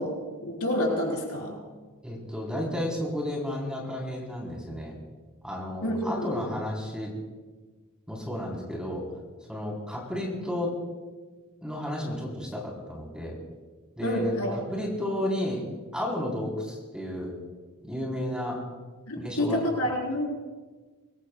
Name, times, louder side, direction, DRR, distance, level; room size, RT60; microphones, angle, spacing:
voice 1, 0.0-1.6 5.8-6.5 14.0-14.6 19.1-20.3, left 1 dB, 75° left, -1 dB, 4.4 m, -28 dB
voice 2, 2.0-4.9 5.4-7.1 8.1-9.0 9.5-10.7 11.6-13.3 14.0-14.3 14.7-15.6 15.9-17.3 17.8-18.6 19.2-19.6, left 1 dB, 5° right, -3 dB, 4.0 m, -32 dB
25.0 x 21.0 x 2.4 m, 1.3 s
head